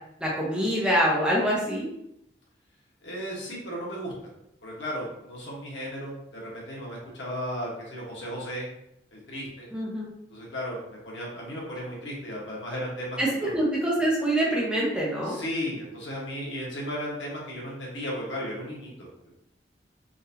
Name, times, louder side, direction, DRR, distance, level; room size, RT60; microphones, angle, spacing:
voice 1, 0.2-1.8 9.7-10.1 13.2-15.4, right 1 dB, 5° right, -4 dB, 0.7 m, -25 dB
voice 2, 3.0-4.3 4.6-8.7 9.1-9.7 10.3-13.5 15.2-19.1, equal, 90° left, -4 dB, 1.2 m, -35 dB
3.9 x 2.6 x 2.7 m, 0.79 s
head